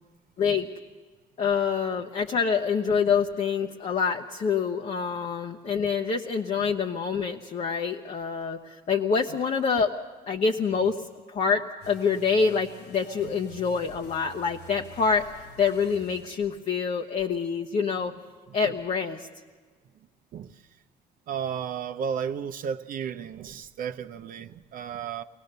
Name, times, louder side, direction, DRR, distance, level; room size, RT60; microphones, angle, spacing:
voice 1, 0.4-0.7 1.4-9.9 10.3-11.0 11.3-15.3 15.6-18.1 18.5-19.3, left 5 dB, 45° left, 0.9 m, -26 dB
sound 1, 11.8-17.1, left 2 dB, 90° left, 3.0 m, -49 dB
voice 2, 21.3-25.2, right 7 dB, 55° right, 0.7 m, -33 dB
23.0 x 18.0 x 6.7 m
cardioid pair, 110°, 17 cm